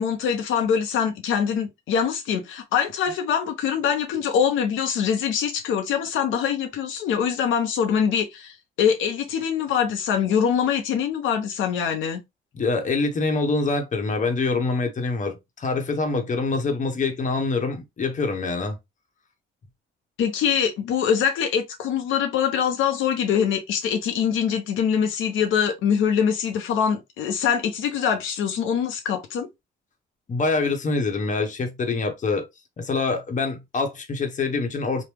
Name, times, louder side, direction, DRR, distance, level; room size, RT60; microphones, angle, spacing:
voice 1, 0.0-12.2 20.2-29.5, left 7 dB, 80° left, 0.7 m, -23 dB
voice 2, 12.5-18.8 30.3-32.4 32.8-35.0, left 3 dB, 40° left, 0.9 m, -25 dB
3.0 x 2.1 x 3.4 m
cardioid pair, 90°, 20 cm